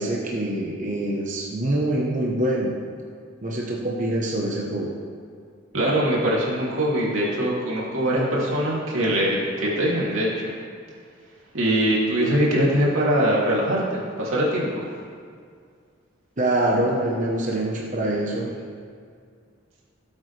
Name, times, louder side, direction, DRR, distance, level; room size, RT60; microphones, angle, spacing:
voice 1, 0.0-2.8 3.4-4.9 16.4-18.6, right 1 dB, 40° right, -3 dB, 1.1 m, -25 dB
voice 2, 5.7-10.5 11.5-14.8, equal, 90° right, -5 dB, 2.9 m, -22 dB
17.5 x 8.3 x 3.4 m, 2.1 s
head